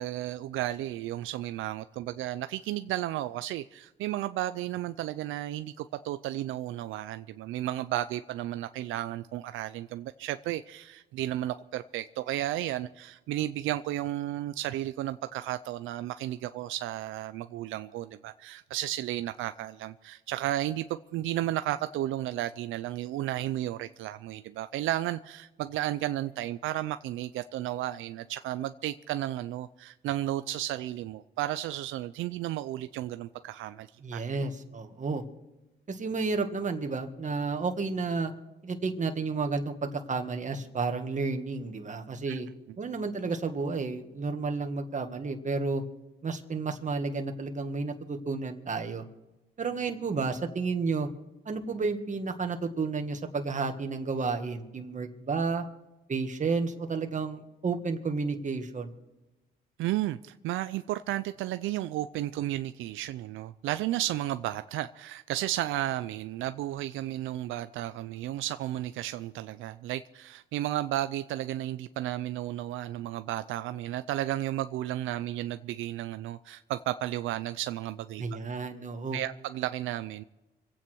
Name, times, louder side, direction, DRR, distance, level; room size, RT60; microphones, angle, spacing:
voice 1, 0.0-33.9 34.1-34.2 42.3-42.4 59.8-78.2 79.1-80.2, right 14 dB, 85° right, 0.5 m, -33 dB
voice 2, 34.0-35.2 35.9-38.3 38.6-42.5 42.8-45.8 46.2-49.1 49.6-51.1 51.5-55.7 56.1-58.9 78.2-79.2, right 4 dB, 40° right, 1.9 m, -31 dB
26.0 x 8.8 x 4.6 m
cardioid pair, 90°, 20 cm